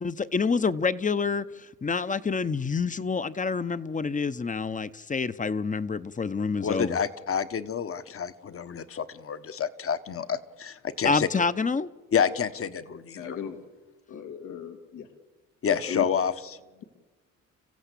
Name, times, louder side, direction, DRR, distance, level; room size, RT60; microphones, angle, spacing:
voice 1, 0.0-1.5 1.8-7.0 11.0-11.9, left 4 dB, 25° left, 13 dB, 0.9 m, -27 dB
voice 2, 6.6-11.3 12.1-13.4 15.6-16.6, left 7 dB, 45° left, 12 dB, 1.4 m, -28 dB
voice 3, 13.1-13.6 14.1-15.1 15.9-16.0, left 7 dB, 85° left, 6 dB, 2.4 m, -36 dB
30.0 x 15.0 x 8.5 m, 1.3 s
cardioid pair, 90°, 30 cm